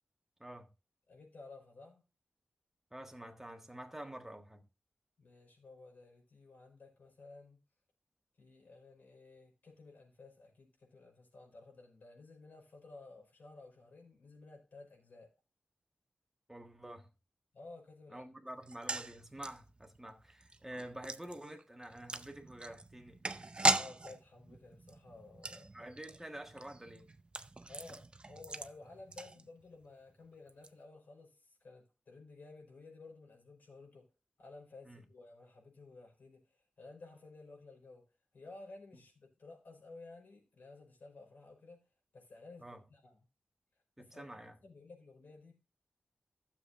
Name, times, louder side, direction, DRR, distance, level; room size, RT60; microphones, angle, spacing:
voice 1, 1.1-2.0 5.2-7.6 8.4-15.3 17.5-18.3 23.7-25.9 27.7-34.1 34.4-38.1 38.3-41.8 42.1-43.2 44.0-44.3 44.6-45.5, left 3 dB, 75° left, 5.1 m, -55 dB
voice 2, 2.9-4.6 16.5-17.1 18.1-23.2 25.7-27.1 34.8-35.0 42.6-42.8 44.0-44.6, right 1 dB, 10° right, 1.5 m, -48 dB
sound 1, 18.6-29.8 30.1-30.2 30.5-30.7, right 3 dB, 30° right, 0.6 m, -39 dB
15.5 x 7.2 x 2.6 m
wide cardioid pair, 105°, 3 cm